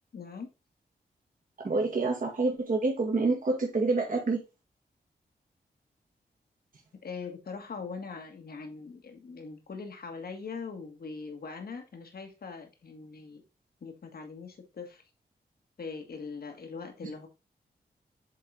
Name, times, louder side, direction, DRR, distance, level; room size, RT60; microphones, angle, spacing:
voice 1, 0.1-0.5 7.0-13.4 13.8-15.0 15.8-17.3, left 4 dB, 65° left, 5 dB, 1.5 m, -41 dB
voice 2, 1.6-4.4, right 3 dB, 50° right, 0 dB, 1.6 m, -27 dB
7.6 x 3.8 x 3.8 m, 0.29 s
cardioid pair, 70°, 17 cm